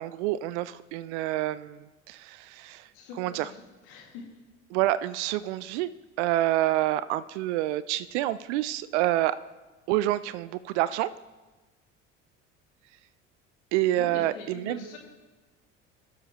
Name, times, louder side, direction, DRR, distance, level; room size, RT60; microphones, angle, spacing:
voice 1, 0.0-2.9 3.2-3.5 4.7-5.9 6.2-9.4 9.9-11.1 13.7-14.8, right 15 dB, 70° right, 16 dB, 0.5 m, -27 dB
voice 2, 2.9-4.3 13.9-15.0, left 5 dB, 70° left, 1 dB, 2.2 m, -43 dB
18.5 x 7.4 x 3.0 m, 1.2 s
hypercardioid pair, 60°, 36 cm